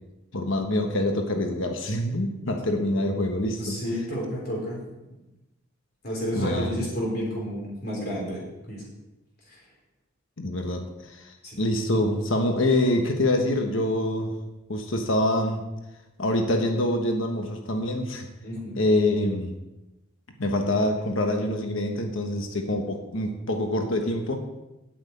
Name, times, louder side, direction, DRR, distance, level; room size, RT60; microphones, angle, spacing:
voice 1, 0.3-3.8 6.3-6.8 10.4-14.3 14.7-15.6 16.2-18.3 18.8-19.6 20.4-24.4, left 1 dB, 80° left, 4 dB, 1.3 m, -25 dB
voice 2, 3.6-4.8 6.0-8.8 9.5-9.6 11.4-11.6 18.4-18.8, equal, 50° left, -4 dB, 3.6 m, -31 dB
8.9 x 6.4 x 8.3 m, 0.99 s
head